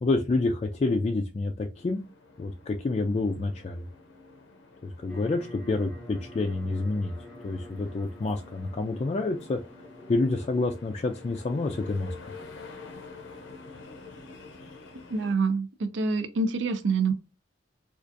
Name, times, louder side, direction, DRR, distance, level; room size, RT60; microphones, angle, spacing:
voice 1, 0.0-2.0 2.4-3.9 4.8-7.1 7.4-9.6 10.1-12.1, left 3 dB, 35° left, 0.3 m, -28 dB
sound 1, 1.7-15.3, left 3 dB, 80° left, 0.7 m, -48 dB
sound 2, 5.1-10.7, equal, 5° left, 0.7 m, -47 dB
voice 2, 15.1-17.1, right 4 dB, 70° right, 0.5 m, -26 dB
4.4 x 2.4 x 2.5 m
head